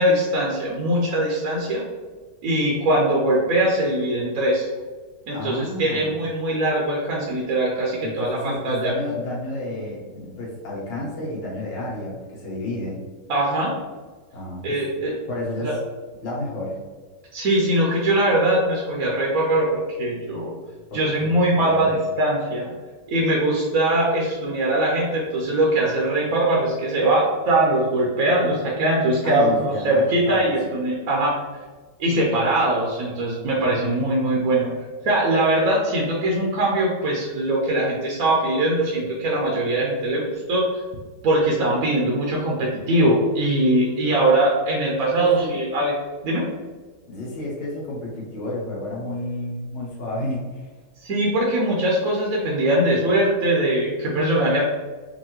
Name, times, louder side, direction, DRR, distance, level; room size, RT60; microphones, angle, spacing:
voice 1, 0.0-1.8 2.4-4.7 5.3-8.9 13.3-13.7 14.6-15.2 15.6-15.7 17.3-20.5 20.9-22.7 23.1-31.3 32.0-40.7 41.2-45.9 46.2-46.5 51.0-54.6, right 1 dB, 60° right, -3 dB, 1.1 m, -21 dB
voice 2, 5.3-6.2 8.0-13.0 14.3-14.8 15.3-15.8 16.2-16.8 20.9-21.9 29.2-30.6 45.2-45.5 47.1-50.7, left 1 dB, 90° left, -5 dB, 2.0 m, -31 dB
5.5 x 2.7 x 3.0 m, 1.4 s
omnidirectional pair, 1.9 m